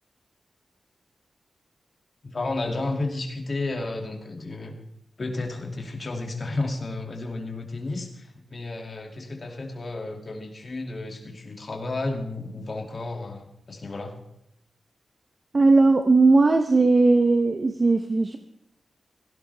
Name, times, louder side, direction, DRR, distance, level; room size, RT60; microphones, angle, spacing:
voice 1, 2.2-4.8 5.2-14.1, left 2 dB, 40° left, 2 dB, 2.5 m, -32 dB
voice 2, 15.5-18.4, right 3 dB, 35° right, 6 dB, 0.9 m, -18 dB
17.0 x 16.5 x 3.5 m, 0.76 s
wide cardioid pair, 160°, 0 cm